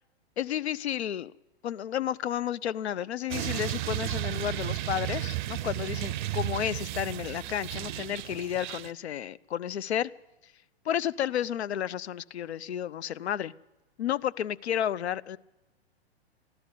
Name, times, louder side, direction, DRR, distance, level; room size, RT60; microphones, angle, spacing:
voice 1, 0.4-1.3 1.6-10.1 10.9-13.5 14.0-15.4, left 10 dB, 80° left, 19 dB, 0.5 m, -32 dB
sound 1, 3.3-8.9, right 14 dB, 50° right, 0.5 m, -33 dB
14.5 x 12.0 x 8.2 m, 1.0 s
hypercardioid pair, 115°, 32 cm